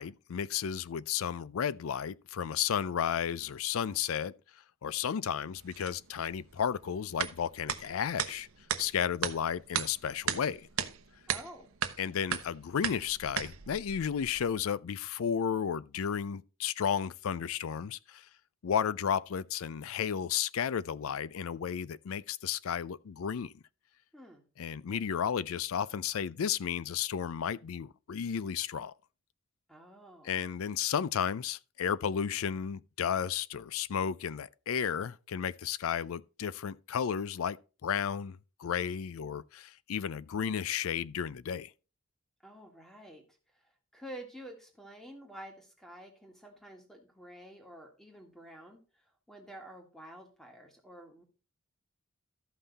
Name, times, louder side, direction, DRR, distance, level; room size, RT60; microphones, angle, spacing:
voice 1, 0.0-4.3 4.8-8.5 8.8-10.7 12.0-18.3 18.6-23.5 24.6-28.9 30.2-37.6 37.8-41.7, left 8 dB, 75° left, 0.4 m, -33 dB
sound 1, 5.6-14.5, right 8 dB, 75° right, 0.8 m, -37 dB
voice 2, 11.3-11.7 24.1-24.4 29.7-30.3 42.4-43.2 43.6-48.8 49.3-51.2, right 1 dB, ahead, 1.8 m, -49 dB
13.0 x 5.6 x 4.0 m
head